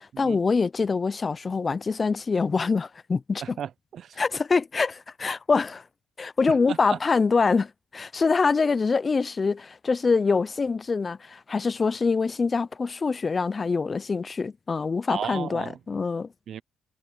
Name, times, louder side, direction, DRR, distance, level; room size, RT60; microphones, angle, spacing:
voice 1, 0.0-3.6 4.2-5.8 6.2-16.3, left 4 dB, 35° left, 0.4 m, -25 dB
voice 2, 3.6-4.1 6.7-7.0 15.1-15.8 16.5-16.6, right 9 dB, 60° right, 0.4 m, -34 dB
cardioid pair, 90°, 0 cm